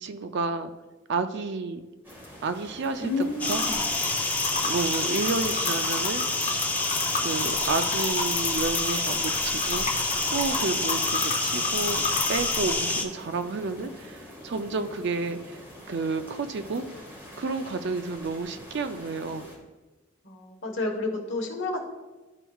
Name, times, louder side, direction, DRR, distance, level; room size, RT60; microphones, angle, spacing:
voice 1, 0.0-0.7 1.1-1.8 2.4-3.6 4.6-6.2 7.2-12.0 12.3-15.6 15.9-17.0 17.4-19.5, right 4 dB, 60° right, 9 dB, 0.5 m, -31 dB
sound 1, 2.0-19.6, equal, 10° right, 1.7 m, -46 dB
voice 2, 3.0-3.8 20.2-21.8, left 2 dB, 65° left, 2 dB, 1.1 m, -30 dB
sound 2, 3.4-13.0, left 2 dB, 10° left, 0.5 m, -28 dB
sound 3, 3.5-12.7, left 4 dB, 35° left, 0.8 m, -32 dB
11.5 x 4.5 x 2.3 m, 1.2 s
head